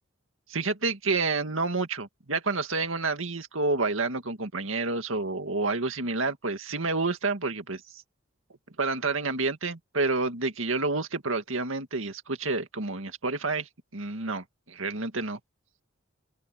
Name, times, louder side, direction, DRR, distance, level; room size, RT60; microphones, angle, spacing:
voice 1, 0.5-7.8 8.8-15.4, right 3 dB, 80° right, 2.1 m, -29 dB
open air
head